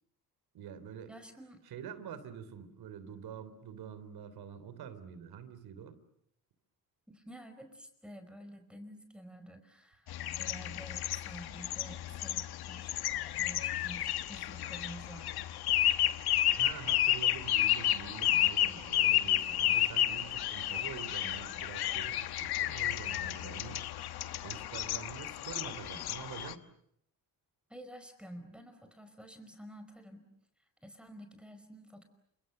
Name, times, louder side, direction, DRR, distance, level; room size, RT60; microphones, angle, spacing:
voice 1, 0.5-1.1 1.6-6.0 16.5-23.8 24.4-26.6, right 8 dB, 75° right, 13 dB, 3.4 m, -46 dB
voice 2, 1.1-1.6 7.1-15.4 27.7-30.2 30.8-32.0, equal, 5° right, 8 dB, 5.0 m, -50 dB
sound 1, 10.1-26.5, left 12 dB, 80° left, 1.4 m, -32 dB
29.5 x 27.0 x 6.7 m, 0.73 s
cardioid pair, 105°, 37 cm